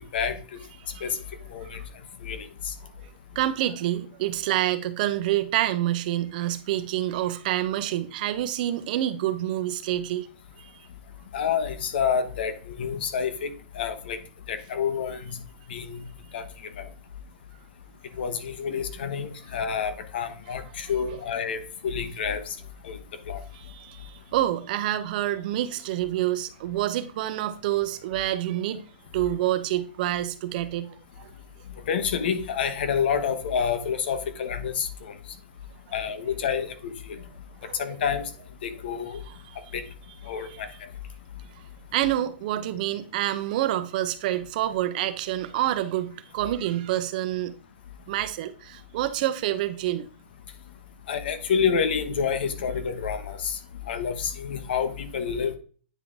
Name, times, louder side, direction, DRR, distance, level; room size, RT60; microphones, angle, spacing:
voice 1, 2.2-2.7 11.3-14.2 14.5-15.4 15.7-16.0 16.3-16.4 16.8-16.9 18.2-22.4 22.8-23.0 23.3-23.4 31.9-35.1 35.9-37.2 37.8-38.2 38.6-39.2 39.7-39.8 40.3-40.7 51.1-53.6 53.9-55.6, left 7 dB, 80° left, 1.1 m, -28 dB
voice 2, 3.3-10.3 10.6-10.7 23.5-28.8 29.1-31.3 37.6-37.9 39.3-39.6 40.4-40.6 41.9-47.5 48.1-50.1, right 13 dB, 55° right, 0.7 m, -27 dB
9.3 x 3.8 x 3.6 m
supercardioid pair, 150°, 6 cm